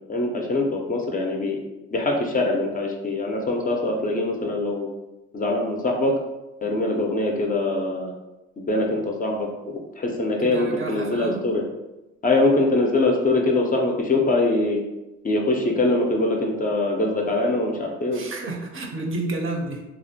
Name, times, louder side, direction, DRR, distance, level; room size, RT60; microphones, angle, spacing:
voice 1, 0.1-1.6 1.9-4.9 5.3-6.1 6.6-8.1 8.6-11.6 12.2-14.8 15.2-18.2, left 2 dB, 30° left, 1 dB, 0.4 m, -23 dB
voice 2, 10.4-11.4 18.1-19.8, right 2 dB, 45° right, 1 dB, 0.5 m, -30 dB
2.4 x 2.1 x 2.6 m, 1.0 s
cardioid pair, 90°, 30 cm